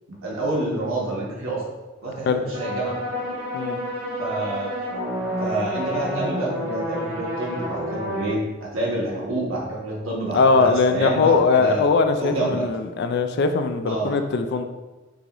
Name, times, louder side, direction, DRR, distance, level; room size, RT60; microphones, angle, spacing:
voice 1, 0.2-1.6 2.0-3.0 4.2-4.7 5.4-11.8 12.2-12.6 13.8-14.1, right 2 dB, 80° right, -5 dB, 1.4 m, -27 dB
sound 1, 2.5-8.3, equal, 60° right, 1.3 m, -29 dB
voice 2, 10.3-14.6, left 4 dB, 55° left, 7 dB, 0.3 m, -20 dB
6.6 x 2.5 x 3.0 m, 1.2 s
head